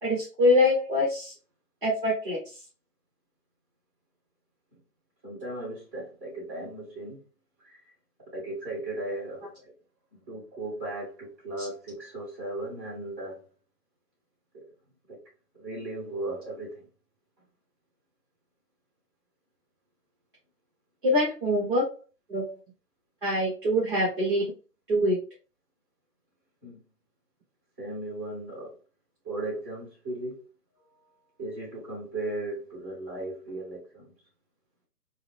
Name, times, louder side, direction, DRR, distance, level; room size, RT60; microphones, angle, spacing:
voice 1, 0.0-1.3 1.8-2.4 11.6-11.7 21.0-21.8 22.3-22.5 23.2-24.5 24.9-25.2, left 1 dB, 30° right, -6 dB, 1.3 m, -24 dB
voice 2, 5.2-7.2 7.6-7.8 8.3-9.4 10.1-13.4 14.5-14.6 15.1-15.2 15.6-16.8 26.6-26.8 27.8-28.7 29.2-30.4 31.4-34.1, right 2 dB, 10° right, -14 dB, 2.0 m, -36 dB
3.8 x 2.2 x 3.4 m, 0.35 s
hypercardioid pair, 180°, 50 cm